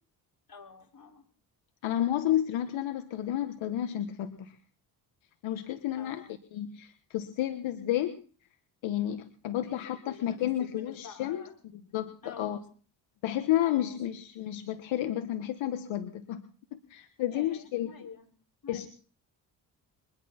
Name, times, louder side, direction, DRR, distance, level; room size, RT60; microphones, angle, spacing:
voice 1, 0.5-1.2 5.9-6.3 9.6-11.5 11.9-12.6 13.6-14.0 17.3-18.3 18.6-18.9, left 6 dB, 45° left, 1 dB, 5.6 m, -49 dB
voice 2, 1.8-4.6 5.4-6.2 6.5-8.2 8.8-11.4 11.7-12.6 13.2-17.9 18.7-18.9, left 12 dB, 80° left, 8 dB, 1.4 m, -31 dB
23.5 x 11.0 x 4.4 m, 0.41 s
supercardioid pair, 60°, 47 cm